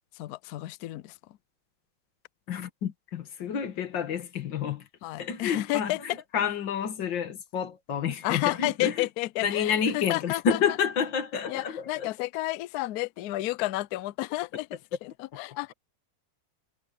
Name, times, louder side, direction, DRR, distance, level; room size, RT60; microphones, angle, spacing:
voice 1, 0.1-1.4 5.0-6.2 8.2-10.6 11.5-15.7, left 17 dB, 85° left, 0.8 m, -31 dB
voice 2, 2.5-4.9 5.2-9.1 9.4-12.1, left 7 dB, 65° left, 2.3 m, -29 dB
omnidirectional pair, 2.2 m